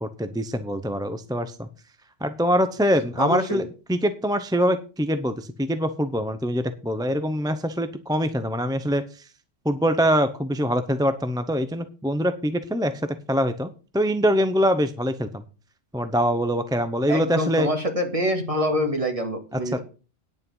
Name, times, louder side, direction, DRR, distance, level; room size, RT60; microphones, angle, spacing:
voice 1, 0.0-1.7 2.2-9.0 9.6-12.9 13.3-15.4 15.9-17.7, equal, 5° right, 10 dB, 0.6 m, -24 dB
voice 2, 3.2-3.6 17.1-19.8, equal, 30° right, 5 dB, 2.1 m, -25 dB
9.6 x 8.5 x 5.5 m, 0.35 s
omnidirectional pair, 1.2 m